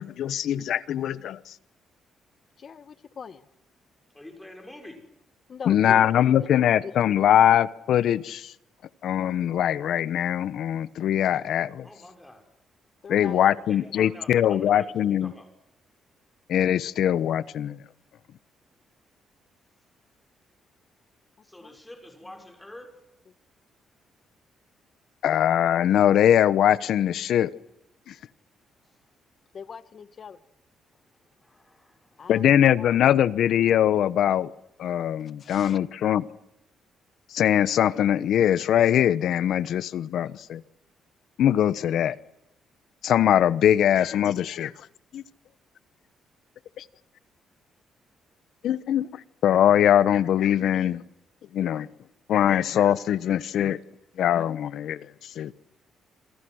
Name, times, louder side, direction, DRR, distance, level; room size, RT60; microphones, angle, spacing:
voice 1, 0.0-1.6 5.7-8.5 9.0-11.9 13.1-15.3 16.5-17.8 25.2-27.5 28.1-28.2 32.3-34.5 34.8-36.3 37.3-40.6 41.4-42.2 43.0-44.9 45.1-45.2 46.8-46.9 48.6-51.0 51.5-51.9 52.3-53.8 54.2-55.5, left 10 dB, 70° left, 1.0 m, -22 dB
voice 2, 2.6-3.5 5.5-6.9 13.0-13.6 21.6-21.7 29.5-30.4 32.2-32.4 32.8-33.2 35.4-35.8, left 6 dB, 45° left, 1.4 m, -41 dB
voice 3, 4.1-5.1 11.8-12.5 13.4-15.5 21.4-23.0 28.9-29.0 31.4-32.3, left 1 dB, 10° left, 5.9 m, -46 dB
28.0 x 27.0 x 6.4 m
cardioid pair, 125°, 0 cm